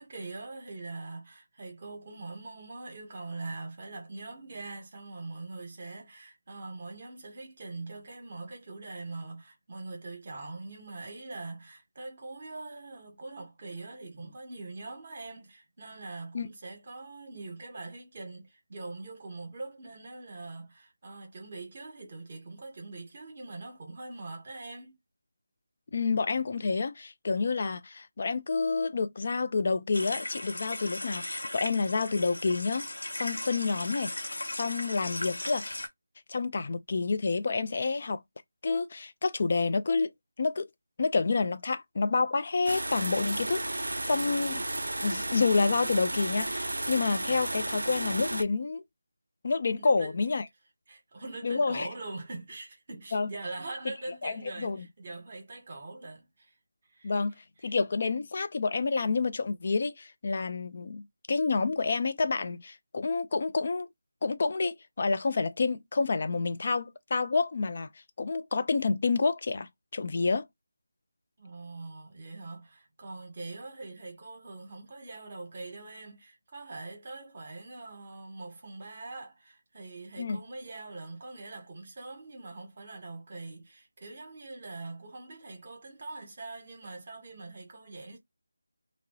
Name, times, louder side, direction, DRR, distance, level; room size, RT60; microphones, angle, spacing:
voice 1, 0.0-25.0 49.7-50.2 50.9-56.6 56.9-57.1 57.6-57.8 71.4-88.2, right 3 dB, 40° right, 1.0 m, -43 dB
voice 2, 25.9-32.9 33.1-34.1 34.4-35.8 36.3-38.2 38.6-40.1 40.4-40.7 41.0-44.6 45.0-48.8 49.4-50.4 51.4-51.9 53.1-53.3 54.2-54.9 57.0-57.4 57.6-61.0 61.3-63.9 64.2-67.9 68.2-70.5 80.2-80.4, left 4 dB, 40° left, 0.3 m, -29 dB
sound 1, 29.9-35.9, left 1 dB, 85° left, 0.7 m, -37 dB
sound 2, 42.7-48.4, right 1 dB, 85° right, 0.3 m, -33 dB
2.6 x 2.0 x 2.3 m
figure-of-eight pair, 170°, 0 cm